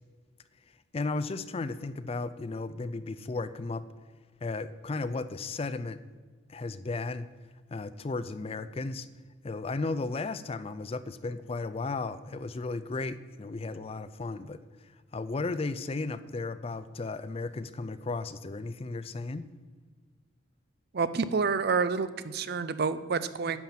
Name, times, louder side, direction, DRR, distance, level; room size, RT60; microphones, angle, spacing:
voice 1, 0.9-3.8 4.4-6.0 6.5-7.3 7.7-9.1 9.4-14.6 15.1-19.4, left 3 dB, 30° left, 13 dB, 0.4 m, -34 dB
voice 2, 20.9-23.6, right 5 dB, 50° right, 13 dB, 0.5 m, -28 dB
10.5 x 5.9 x 7.3 m, 1.5 s
head